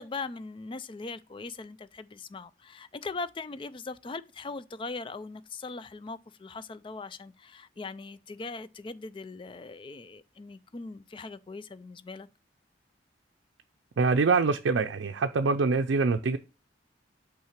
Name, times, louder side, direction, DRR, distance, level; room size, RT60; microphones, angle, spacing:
voice 1, 0.0-12.3, left 3 dB, 25° left, 0.4 m, -40 dB
voice 2, 14.0-16.4, right 4 dB, 85° right, 0.5 m, -24 dB
5.7 x 3.7 x 5.7 m
head